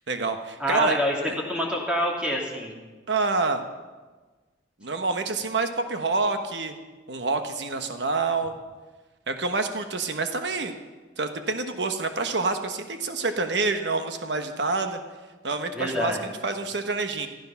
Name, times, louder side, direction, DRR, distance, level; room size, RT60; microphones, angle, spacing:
voice 1, 0.1-1.0 1.3-1.4 3.1-3.6 4.8-6.8 7.1-8.5 9.3-10.7 11.2-15.0 15.4-17.3, right 3 dB, 75° right, 7 dB, 1.2 m, -27 dB
voice 2, 0.6-1.1 1.5-2.7 15.7-16.2, left 1 dB, 5° right, -2 dB, 2.9 m, -26 dB
15.0 x 13.0 x 5.8 m, 1.3 s
head